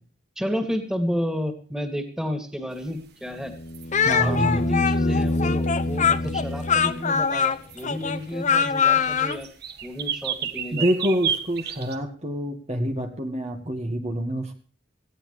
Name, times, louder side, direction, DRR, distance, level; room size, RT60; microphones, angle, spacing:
voice 1, 0.4-3.5 4.2-9.5 9.8-10.8, equal, 5° right, 7 dB, 2.5 m, -31 dB
sound 1, 2.7-11.9, right 8 dB, 55° right, 1.6 m, -33 dB
sound 2, 3.3-7.4 9.8-9.9, left 1 dB, 60° left, 1.1 m, -27 dB
Speech, 3.9-9.4, left 7 dB, 40° left, 0.8 m, -23 dB
voice 2, 4.1-4.7 6.2-6.3 10.7-14.5, equal, 35° right, 4 dB, 1.8 m, -26 dB
19.0 x 15.5 x 3.3 m, 0.39 s
head